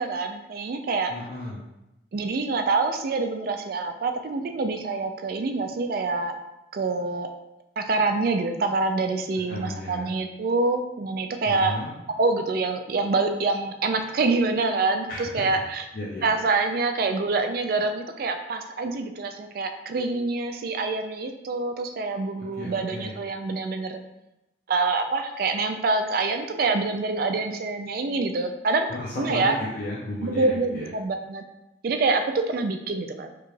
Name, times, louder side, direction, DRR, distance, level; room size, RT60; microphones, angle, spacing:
voice 1, 0.0-1.1 2.1-6.4 6.7-7.3 7.8-11.7 12.1-15.8 16.2-24.0 24.7-28.9 29.2-29.5 30.2-31.4 31.8-33.3, right 3 dB, 50° right, 6 dB, 0.3 m, -26 dB
voice 2, 1.1-1.7 9.5-10.1 11.5-11.9 15.1-15.6 15.9-16.3 22.6-23.2 28.9-30.9, left 1 dB, 50° left, -6 dB, 0.6 m, -34 dB
4.7 x 2.3 x 3.1 m, 0.94 s
head